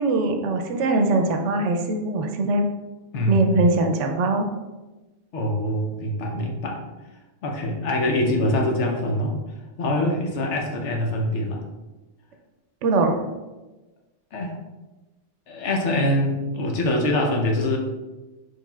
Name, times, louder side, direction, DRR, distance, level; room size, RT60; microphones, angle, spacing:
voice 1, 0.0-2.7 3.3-4.5 12.8-13.2, right 2 dB, 80° right, 4 dB, 0.9 m, -21 dB
voice 2, 3.1-3.6 5.3-6.8 7.4-9.4 9.8-11.6 14.3-14.6 15.5-17.8, left 1 dB, 75° left, 1 dB, 1.1 m, -24 dB
6.3 x 3.3 x 2.3 m, 1.1 s
omnidirectional pair, 1.2 m